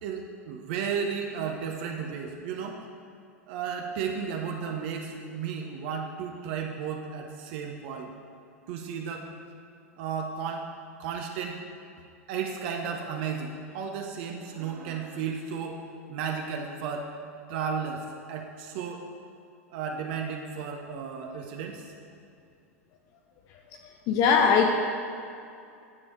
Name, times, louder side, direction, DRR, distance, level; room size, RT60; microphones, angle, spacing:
voice 1, 0.0-2.8 3.5-8.1 8.7-9.2 10.0-10.7 11.0-11.6 12.3-15.8 16.1-17.1 17.5-19.0 19.7-21.8, right 6 dB, 50° right, 3 dB, 0.7 m, -33 dB
voice 2, 24.1-24.7, left 6 dB, 40° left, 3 dB, 0.6 m, -20 dB
9.6 x 7.0 x 3.2 m, 2.5 s
figure-of-eight pair, 90°, 8 cm